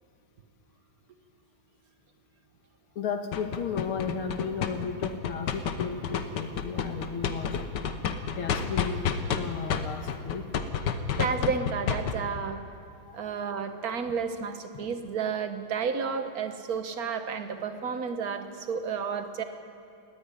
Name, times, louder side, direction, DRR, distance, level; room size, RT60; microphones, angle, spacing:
voice 1, 3.0-7.6 8.4-9.0 9.4-10.5 13.1-13.2, left 6 dB, 80° left, 6 dB, 2.3 m, -34 dB
sound 1, 3.3-9.4 9.7-12.1, left 7 dB, 60° left, 1.5 m, -29 dB
voice 2, 11.2-12.6 13.1-19.4, right 6 dB, 50° right, 8 dB, 1.5 m, -31 dB
18.5 x 15.0 x 9.9 m, 2.4 s
omnidirectional pair, 2.3 m